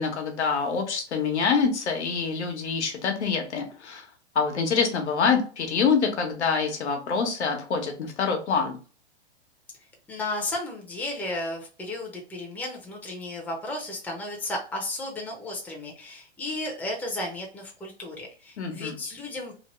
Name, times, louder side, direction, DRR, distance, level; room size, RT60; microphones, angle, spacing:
voice 1, 0.0-4.0 4.3-8.8 18.6-19.0, left 5 dB, 85° left, 4 dB, 1.0 m, -26 dB
voice 2, 10.1-19.5, left 2 dB, 5° left, 0 dB, 0.6 m, -34 dB
3.0 x 2.1 x 3.0 m, 0.37 s
hypercardioid pair, 125°, 33 cm